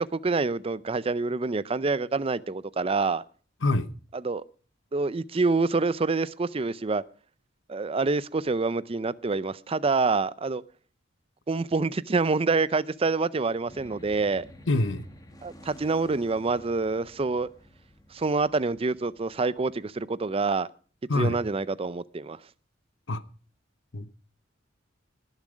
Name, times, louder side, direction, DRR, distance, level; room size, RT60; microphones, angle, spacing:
voice 1, 0.0-3.2 4.2-4.4 4.9-7.0 7.7-10.6 11.5-14.4 15.4-17.5 18.1-20.7 21.1-22.4, right 3 dB, 30° right, 0.5 m, -26 dB
sound 1, 13.6-20.2, left 1 dB, 20° left, 1.6 m, -52 dB
voice 2, 14.7-15.0 21.1-21.4 23.1-23.2 23.9-24.1, left 2 dB, 75° left, 1.0 m, -25 dB
19.0 x 7.3 x 5.0 m
head